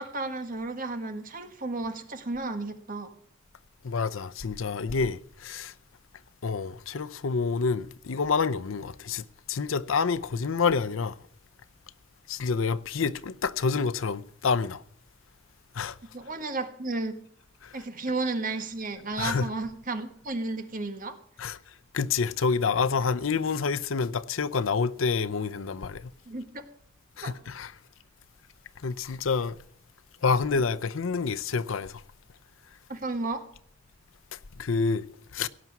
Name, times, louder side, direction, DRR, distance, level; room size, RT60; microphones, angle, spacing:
voice 1, 0.0-3.1 16.1-17.2 17.7-21.2 26.2-26.6 27.2-27.4 32.9-33.4, right 3 dB, 45° right, 1.6 m, -33 dB
voice 2, 3.8-5.7 6.4-11.1 12.3-14.8 15.8-15.9 19.2-19.5 21.4-21.6 21.9-26.1 27.2-27.7 28.8-29.6 30.2-31.9 34.6-35.0 35.3-35.5, left 5 dB, 90° left, 0.6 m, -28 dB
17.0 x 6.1 x 9.3 m
head